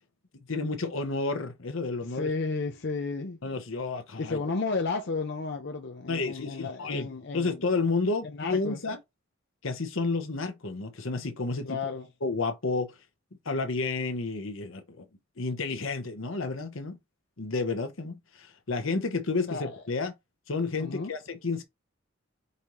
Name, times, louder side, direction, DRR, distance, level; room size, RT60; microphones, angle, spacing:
voice 1, 0.5-2.3 3.4-4.4 6.1-7.1 7.3-9.0 9.6-11.8 12.2-12.9 13.4-15.1 15.4-17.0 17.4-20.1 20.5-21.6, left 3 dB, 80° left, 1.0 m, -31 dB
voice 2, 2.0-3.4 4.2-7.6 8.2-8.8 11.6-12.1 19.5-19.8 20.8-21.1, left 4 dB, 60° left, 0.6 m, -33 dB
5.3 x 2.7 x 3.1 m
head